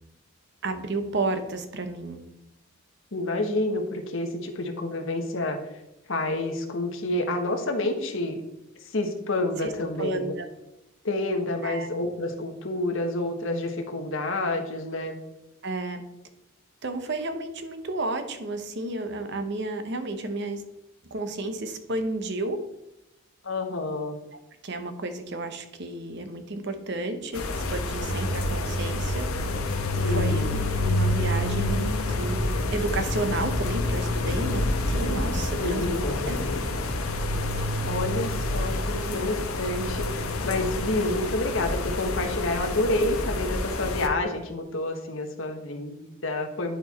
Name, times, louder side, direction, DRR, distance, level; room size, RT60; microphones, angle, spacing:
voice 1, 0.6-2.2 9.6-9.7 10.0-10.5 11.6-11.9 15.6-16.0 16.8-20.6 21.1-22.6 24.6-29.3 29.9-35.9 36.2-36.4 39.1-39.2 39.8-39.9, right 2 dB, 50° right, 8 dB, 0.9 m, -32 dB
voice 2, 3.1-5.6 6.1-8.4 8.8-10.3 11.0-15.2 23.4-24.2 29.9-30.7 35.6-36.7 37.9-46.8, left 2 dB, 65° left, 4 dB, 1.2 m, -29 dB
sound 1, 27.3-44.1, left 1 dB, 85° left, 1.0 m, -28 dB
10.5 x 4.5 x 4.2 m, 0.90 s
head